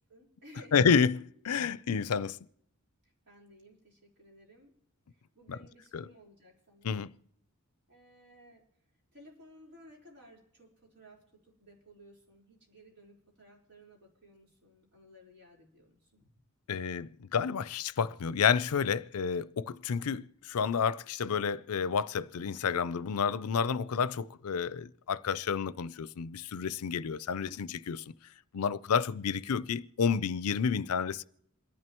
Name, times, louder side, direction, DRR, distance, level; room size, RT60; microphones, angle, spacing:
voice 1, 0.1-0.7 3.0-4.7 5.1-7.0 7.9-8.6 9.1-16.3, equal, 50° right, 4.3 m, -57 dB
voice 2, 0.7-2.4 5.5-5.6 5.9-6.0 6.8-7.1 16.7-28.0 28.5-31.2, left 6 dB, 80° left, 0.5 m, -30 dB
28.0 x 11.0 x 3.0 m
head